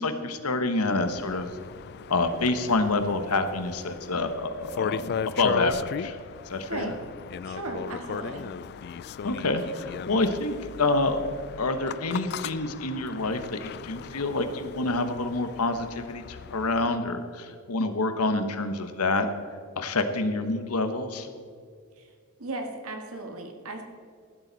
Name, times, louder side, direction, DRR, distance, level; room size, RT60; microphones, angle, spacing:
voice 1, 0.0-1.5 2.1-6.2 6.4-6.9 9.2-11.2 11.6-19.3 19.8-21.3, left 2 dB, 85° left, 8 dB, 1.2 m, -27 dB
sound 1, 1.0-17.0, left 7 dB, 45° left, 0.3 m, -37 dB
voice 2, 7.4-8.5 22.0-22.1 22.4-23.8, right 2 dB, 70° right, 3 dB, 2.0 m, -36 dB
15.5 x 12.0 x 4.1 m, 2.2 s
head